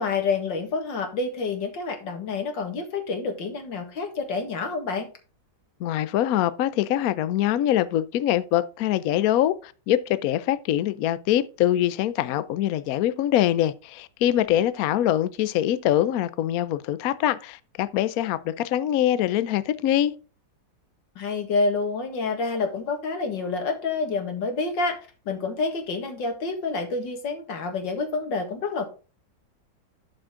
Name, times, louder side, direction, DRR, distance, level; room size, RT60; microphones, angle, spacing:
voice 1, 0.0-5.1 21.2-25.0 25.3-28.8, left 4 dB, 85° left, 2.4 m, -28 dB
voice 2, 5.8-20.1, left 12 dB, 70° left, 0.9 m, -24 dB
11.5 x 5.2 x 3.7 m
omnidirectional pair, 1.9 m